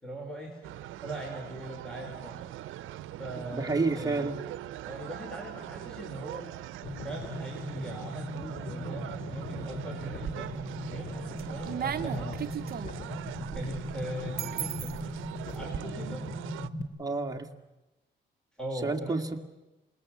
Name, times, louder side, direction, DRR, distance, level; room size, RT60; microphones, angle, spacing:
voice 1, 0.0-0.7 1.0-2.4 3.2-4.3 4.8-6.5 7.0-10.5 10.8-12.4 13.5-14.9 15.5-16.3 18.6-19.2, right 1 dB, 5° left, 1 dB, 4.5 m, -40 dB
sound 1, 0.6-16.7, right 13 dB, 85° right, 0.8 m, -42 dB
voice 2, 3.5-4.4 17.0-17.5 18.8-19.4, right 3 dB, 20° right, 3 dB, 2.0 m, -29 dB
sound 2, 6.8-16.8, left 1 dB, 40° left, 2.8 m, -39 dB
sound 3, 10.0-10.7 11.1-15.8, right 8 dB, 50° right, 0.9 m, -37 dB
27.0 x 20.5 x 7.5 m, 1.0 s
cardioid pair, 90°, 20 cm